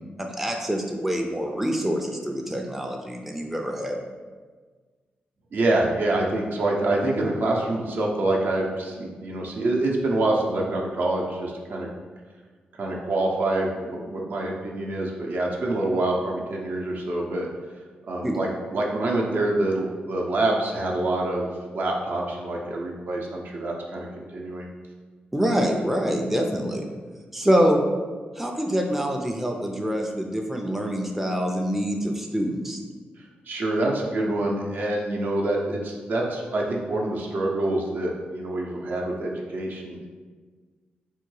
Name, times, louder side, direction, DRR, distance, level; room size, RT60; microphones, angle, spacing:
voice 1, 0.2-4.0 18.2-18.4 25.3-26.9 27.3-27.9 28.4-32.8, equal, 5° right, 1 dB, 0.4 m, -25 dB
voice 2, 5.5-11.9 12.8-17.5 18.1-21.5 21.7-24.7 33.5-40.1, right 2 dB, 65° right, -1 dB, 0.6 m, -26 dB
3.5 x 2.2 x 3.1 m, 1.5 s
cardioid pair, 65°, 4 cm